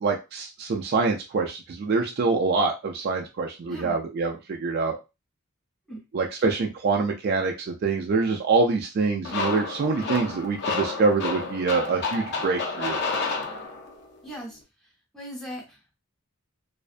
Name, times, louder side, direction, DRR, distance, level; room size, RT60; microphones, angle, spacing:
voice 1, 0.0-5.0 6.1-13.0, right 4 dB, 50° right, 2 dB, 0.3 m, -25 dB
sound 1, 9.2-14.0, left 4 dB, 55° left, 0.5 m, -30 dB
voice 2, 14.2-14.6 15.1-15.8, right 1 dB, ahead, -2 dB, 0.6 m, -38 dB
2.5 x 2.2 x 2.4 m, 0.27 s
head